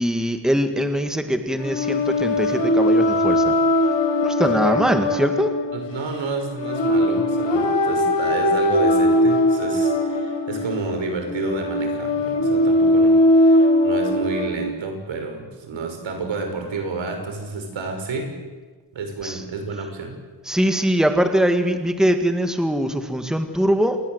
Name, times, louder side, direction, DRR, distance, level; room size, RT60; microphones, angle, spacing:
voice 1, 0.0-3.5 4.2-5.5 19.2-19.4 20.5-24.0, equal, ahead, 7 dB, 1.9 m, -22 dB
sound 1, 1.6-14.5, left 1 dB, 80° left, 5.9 m, -20 dB
voice 2, 4.4-4.8 5.7-18.3 18.9-20.1, right 3 dB, 90° right, 5 dB, 6.1 m, -30 dB
28.0 x 21.5 x 8.1 m, 1.4 s
wide cardioid pair, 155°, 44 cm